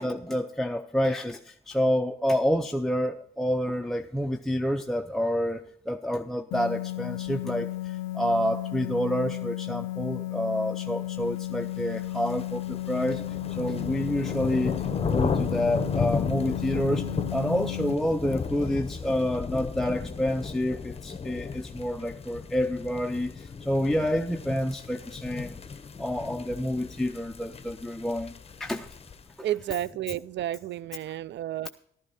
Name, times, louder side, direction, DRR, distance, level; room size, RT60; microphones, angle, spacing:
voice 1, 0.0-13.2 13.5-25.6 26.0-28.3 28.6-28.9 29.4-29.5, equal, ahead, 0.6 m, -28 dB
sound 1, 6.5-17.9, left 16 dB, 90° left, 0.4 m, -34 dB
sound 2, 11.8-29.3, left 5 dB, 30° left, 0.9 m, -34 dB
voice 2, 29.4-31.7, right 12 dB, 65° right, 0.4 m, -31 dB
12.0 x 11.0 x 4.2 m
cardioid pair, 90°, 20 cm